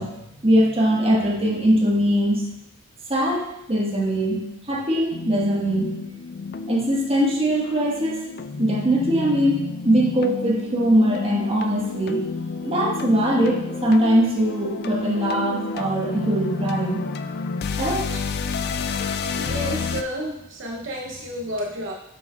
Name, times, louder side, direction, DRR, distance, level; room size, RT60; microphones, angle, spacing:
voice 1, 0.0-2.4 3.1-5.9 6.7-8.2 8.6-12.3 12.6-17.0 17.8-18.2, equal, 30° right, -3 dB, 1.4 m, -21 dB
sound 1, 5.1-20.0, left 4 dB, 50° left, 0.4 m, -30 dB
voice 2, 19.3-21.9, equal, 65° right, 0 dB, 0.7 m, -31 dB
8.1 x 6.3 x 2.3 m, 0.82 s
head